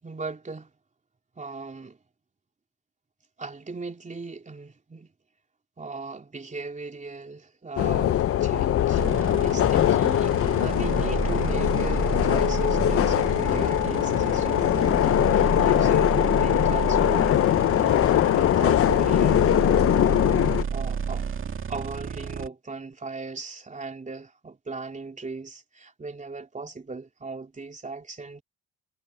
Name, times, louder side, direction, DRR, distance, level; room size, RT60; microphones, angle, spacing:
voice 1, 0.0-0.7 1.4-2.0 3.4-5.1 5.8-17.3 17.8-20.0 20.7-21.2 21.7-28.4, right 3 dB, 25° right, 3.6 m, -38 dB
sound 1, 7.8-20.6, left 12 dB, 50° left, 0.5 m, -22 dB
sound 2, 9.0-22.5, right 6 dB, 45° right, 2.2 m, -31 dB
cardioid pair, 90°, 30 cm